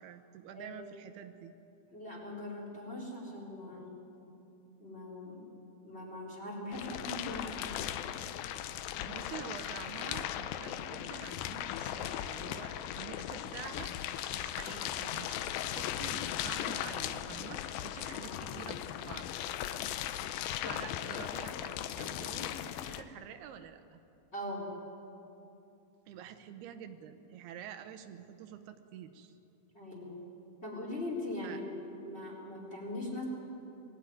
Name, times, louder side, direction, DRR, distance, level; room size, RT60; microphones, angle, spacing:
voice 1, 0.0-1.5 9.0-13.9 14.3-19.3 20.6-24.0 26.1-29.3 31.4-31.6, right 8 dB, 85° right, 8 dB, 3.0 m, -48 dB
voice 2, 0.5-0.9 1.9-3.9 4.8-5.5 5.8-7.8 18.1-18.7 24.3-24.7 29.7-30.2 30.6-33.2, left 1 dB, 15° left, -2 dB, 3.9 m, -41 dB
sound 1, 6.7-23.0, left 11 dB, 80° left, 2.4 m, -38 dB
22.5 x 15.5 x 9.5 m, 2.7 s
omnidirectional pair, 4.5 m